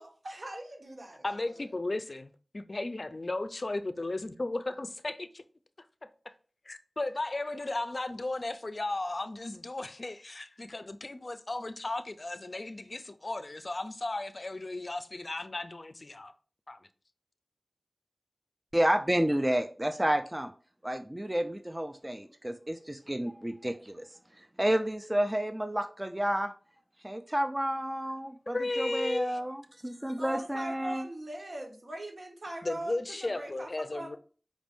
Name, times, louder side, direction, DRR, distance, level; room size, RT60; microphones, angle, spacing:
voice 1, 0.0-1.5 30.2-34.2, right 1 dB, 70° right, 1.2 m, -41 dB
voice 2, 1.2-5.4 6.0-6.3 6.7-16.3 16.7-16.8 28.5-29.4 32.6-34.2, left 2 dB, 55° left, 0.4 m, -35 dB
voice 3, 18.7-20.5 20.8-24.0 24.6-26.5 27.0-31.0, right 1 dB, 20° right, 0.4 m, -30 dB
5.1 x 2.5 x 3.5 m
wide cardioid pair, 55°, 0 cm